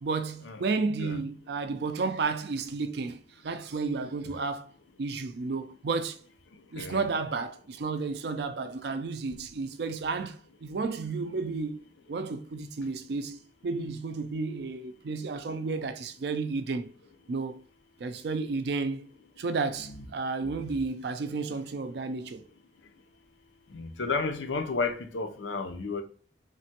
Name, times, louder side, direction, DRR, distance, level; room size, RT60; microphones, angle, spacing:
voice 1, 0.0-4.7 5.0-6.2 6.7-11.8 12.1-13.4 13.6-16.9 17.3-17.6 18.0-19.1 19.4-22.4, right 4 dB, 60° right, 0.4 m, -32 dB
voice 2, 6.7-7.1 19.8-20.1 23.7-26.0, left 4 dB, 85° left, 0.6 m, -32 dB
3.2 x 2.1 x 2.8 m
head